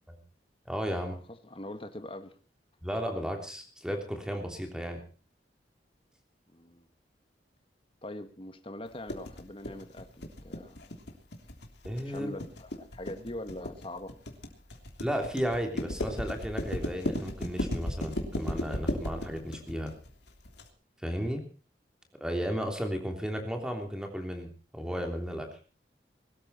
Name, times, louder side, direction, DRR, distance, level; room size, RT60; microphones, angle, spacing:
voice 1, 0.7-1.2 2.8-5.0 11.8-12.3 15.0-19.9 21.0-21.4 22.2-25.5, equal, 5° right, 4 dB, 3.3 m, -34 dB
voice 2, 1.3-2.4 6.5-6.9 8.0-10.8 12.1-14.1, left 1 dB, 30° left, 9 dB, 1.6 m, -42 dB
sound 1, 9.1-20.6, left 1 dB, 70° left, 3.1 m, -35 dB
22.0 x 13.5 x 4.3 m, 0.37 s
head